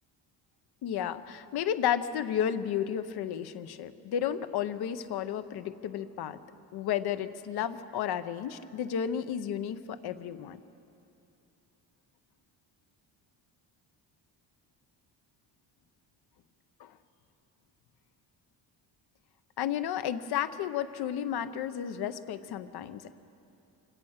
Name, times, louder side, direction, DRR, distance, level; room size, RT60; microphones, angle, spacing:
voice 1, 0.8-6.4 6.7-10.6 16.8-16.9 19.6-23.1, left 9 dB, 60° left, 11 dB, 0.9 m, -32 dB
25.5 x 17.5 x 6.5 m, 2.7 s
cardioid pair, 170°, 43 cm